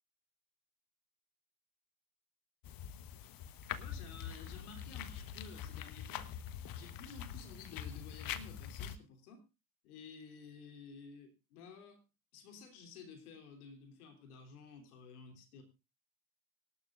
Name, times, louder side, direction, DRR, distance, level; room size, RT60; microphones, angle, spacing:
sound 1, 2.6-9.0, left 9 dB, 50° left, 1.2 m, -44 dB
voice 1, 3.7-6.2 6.7-9.4 9.8-12.0 12.3-15.6, left 5 dB, 75° left, 4 dB, 3.3 m, -53 dB
25.0 x 12.0 x 2.5 m, 0.28 s
hypercardioid pair, 60°, 45 cm